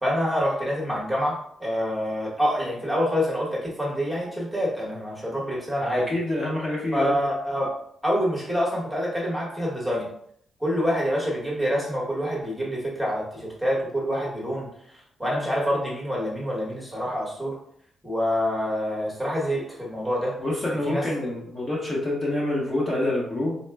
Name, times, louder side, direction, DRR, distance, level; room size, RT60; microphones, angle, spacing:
voice 1, 0.0-6.1 6.9-7.7 8.0-10.1 10.6-17.6 18.0-20.4 20.9-21.0, equal, ahead, -5 dB, 0.9 m, -26 dB
voice 2, 5.8-7.2 20.4-23.6, left 1 dB, 25° left, -6 dB, 0.7 m, -27 dB
4.0 x 2.1 x 3.3 m, 0.68 s
wide cardioid pair, 175°, 0 cm